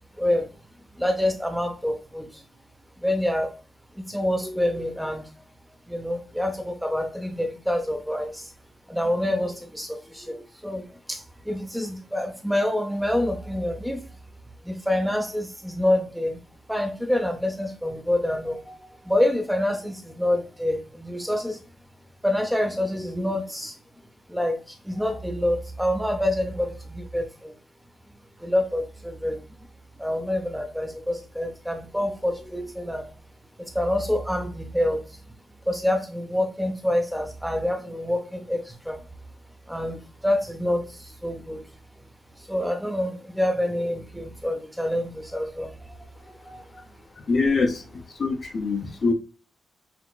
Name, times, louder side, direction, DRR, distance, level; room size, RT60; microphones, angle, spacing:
voice 1, 0.2-0.5 0.9-2.4 3.0-3.6 3.9-5.3 5.9-8.5 8.9-14.0 14.6-16.4 16.7-18.8 19.0-21.6 22.2-23.8 24.3-27.5 28.4-29.4 30.0-33.1 33.6-35.0 35.7-39.0 39.7-41.6 42.5-46.0 46.2-46.7, left 1 dB, ahead, 0.6 m, -27 dB
voice 2, 47.3-49.1, left 4 dB, 40° left, 0.6 m, -24 dB
5.9 x 2.8 x 2.3 m
wide cardioid pair, 165°, 0 cm